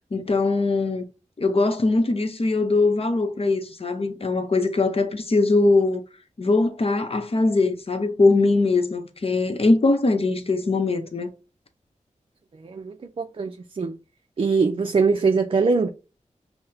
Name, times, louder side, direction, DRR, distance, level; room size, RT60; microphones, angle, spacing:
voice 1, 0.1-1.0 1.4-6.0 6.4-11.3, left 3 dB, 50° left, 0.8 m, -21 dB
voice 2, 12.6-14.0 14.4-15.9, right 4 dB, 45° right, 0.4 m, -22 dB
5.7 x 2.1 x 2.7 m
cardioid pair, 60°, 13 cm